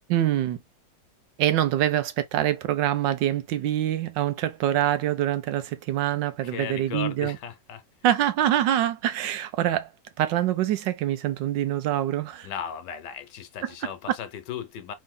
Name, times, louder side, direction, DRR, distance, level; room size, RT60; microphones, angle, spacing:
voice 1, 0.1-0.6 1.4-7.4 8.0-9.9 10.2-12.5, right 12 dB, 85° right, 1.4 m, -25 dB
voice 2, 6.4-7.8 12.4-14.9, left 8 dB, 75° left, 1.3 m, -36 dB
3.6 x 2.7 x 3.6 m
omnidirectional pair, 1.9 m